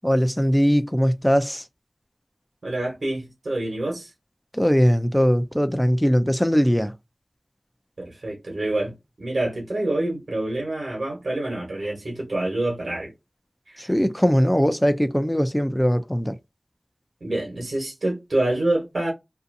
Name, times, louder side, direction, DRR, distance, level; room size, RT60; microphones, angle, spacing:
voice 1, 0.0-1.6 4.5-6.9 13.8-16.3, equal, 10° left, 0.4 m, -20 dB
voice 2, 2.6-4.1 8.0-13.1 13.7-13.9 17.2-19.1, right 1 dB, 90° right, 1.1 m, -27 dB
2.6 x 2.4 x 2.5 m
wide cardioid pair, 45°, 0 cm